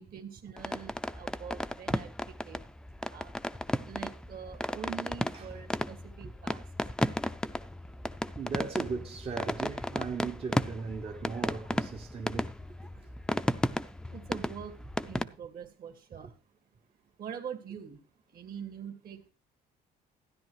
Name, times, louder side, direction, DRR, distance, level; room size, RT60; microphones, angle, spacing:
voice 1, 0.0-2.1 2.4-2.6 3.1-3.3 3.8-6.6 14.1-14.8 15.1-16.3 17.2-18.0 18.3-19.3, right 8 dB, 60° right, 2.0 m, -44 dB
sound 1, 0.6-15.2, left 1 dB, 5° left, 0.4 m, -34 dB
voice 2, 8.4-12.5, right 5 dB, 35° right, 0.7 m, -37 dB
13.0 x 10.5 x 3.1 m
cardioid pair, 110°, 17 cm